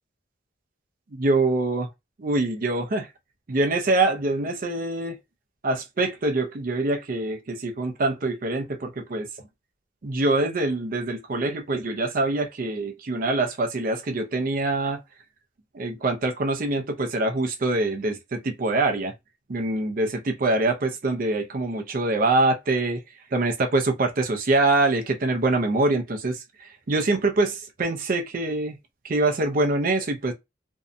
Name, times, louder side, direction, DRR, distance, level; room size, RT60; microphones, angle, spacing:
voice 1, 1.1-1.9 2.2-3.1 3.5-5.2 5.6-9.3 10.0-15.0 15.7-19.1 19.5-23.0 23.3-28.8 29.0-30.3, right 2 dB, 45° right, 0.5 m, -24 dB
2.6 x 2.1 x 2.5 m
head